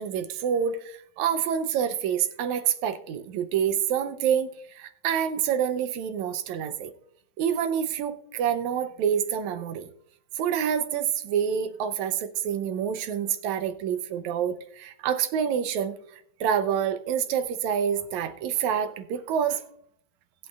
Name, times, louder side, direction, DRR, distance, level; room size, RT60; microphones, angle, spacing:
voice 1, 0.0-6.9 7.4-9.9 10.4-16.0 16.4-19.6, right 8 dB, 75° right, 10 dB, 1.9 m, -27 dB
20.0 x 8.3 x 2.3 m, 0.68 s
omnidirectional pair, 3.5 m